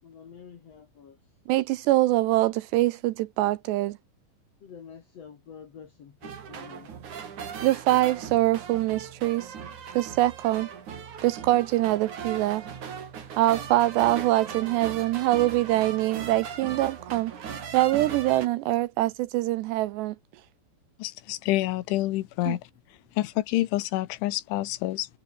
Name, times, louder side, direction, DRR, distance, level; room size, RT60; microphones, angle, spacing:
voice 1, 0.0-1.2 4.6-6.9, left 7 dB, 55° left, 1.8 m, -47 dB
voice 2, 1.5-4.0 7.6-9.5 10.0-10.7 11.2-12.6 13.4-17.3 17.7-20.2 22.5-22.6, right 17 dB, 80° right, 2.6 m, -24 dB
sound 1, 6.2-18.5, right 7 dB, 45° right, 3.8 m, -38 dB
voice 3, 21.0-22.6 23.2-25.1, left 16 dB, 80° left, 3.5 m, -27 dB
omnidirectional pair, 5.4 m